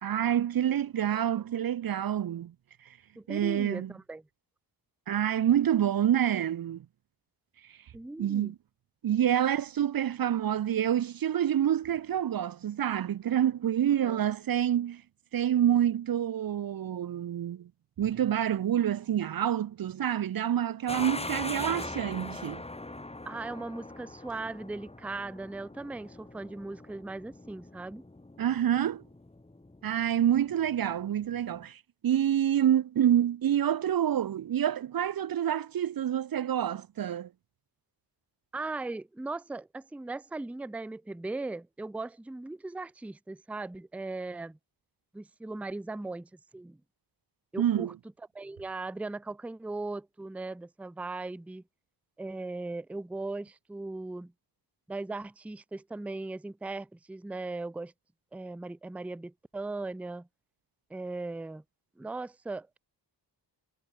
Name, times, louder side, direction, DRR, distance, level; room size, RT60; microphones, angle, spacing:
voice 1, 0.0-2.5 3.3-3.9 5.1-6.8 8.2-8.5 9.0-15.0 15.3-17.7 18.0-22.6 28.4-29.0 29.8-37.3 47.6-47.9, right 10 dB, 55° right, 0.6 m, -27 dB
voice 2, 3.2-4.2 7.9-8.6 14.0-14.2 23.2-28.0 38.5-44.6 45.1-46.8 47.5-47.9 48.3-51.6 52.2-54.3 54.9-57.9 58.3-60.3 60.9-61.6 62.0-62.8, right 2 dB, 5° right, 0.5 m, -38 dB
sound 1, 20.9-31.6, left 2 dB, 15° left, 1.8 m, -42 dB
wide cardioid pair, 90°, 42 cm